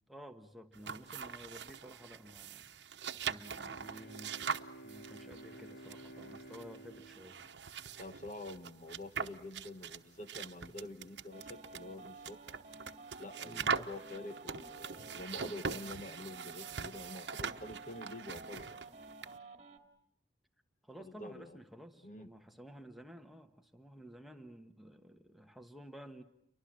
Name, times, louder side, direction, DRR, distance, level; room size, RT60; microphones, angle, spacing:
voice 1, 0.1-2.7 3.2-4.6 4.8-7.5 13.4-13.7 20.8-26.2, equal, ahead, 4 dB, 1.3 m, -53 dB
sound 1, 0.7-19.4, right 6 dB, 80° right, 1.0 m, -42 dB
Bowed string instrument, 3.4-8.4, right 1 dB, 65° left, 3.2 m, -53 dB
voice 2, 8.0-12.4 13.2-18.8 21.0-21.6 22.0-22.3, left 1 dB, 45° left, 9 dB, 1.1 m, -47 dB
sound 2, 11.3-19.8, right 3 dB, 40° right, 2.5 m, -52 dB
29.5 x 24.0 x 7.6 m, 0.76 s
head